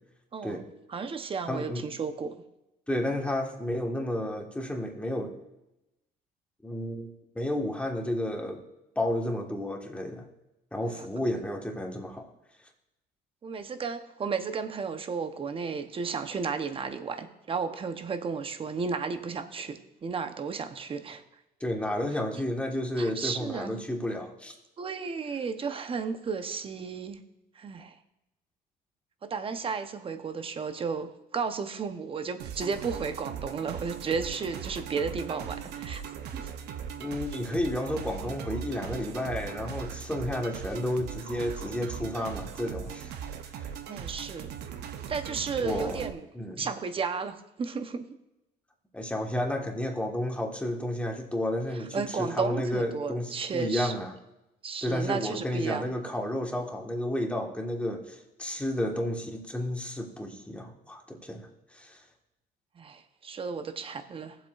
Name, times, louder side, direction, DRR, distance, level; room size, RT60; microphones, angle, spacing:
voice 1, 0.3-0.6 0.9-2.3 10.8-11.1 13.4-21.2 23.0-23.8 24.8-27.2 27.6-28.0 29.2-36.0 36.3-36.5 43.9-44.6 45.1-46.3 46.6-48.2 51.7-54.0 54.6-55.9 62.8-64.4, right 5 dB, 35° right, 9 dB, 0.8 m, -33 dB
voice 2, 1.5-1.9 2.9-5.3 6.6-8.6 8.9-10.3 10.7-12.3 21.6-24.5 37.0-43.1 45.6-46.0 46.3-46.7 48.9-54.1 54.8-62.0, left 1 dB, 5° left, 1 dB, 1.4 m, -32 dB
sound 1, 32.4-46.1, right 8 dB, 75° right, 0.8 m, -39 dB
18.5 x 7.7 x 2.5 m, 0.94 s
cardioid pair, 110°, 17 cm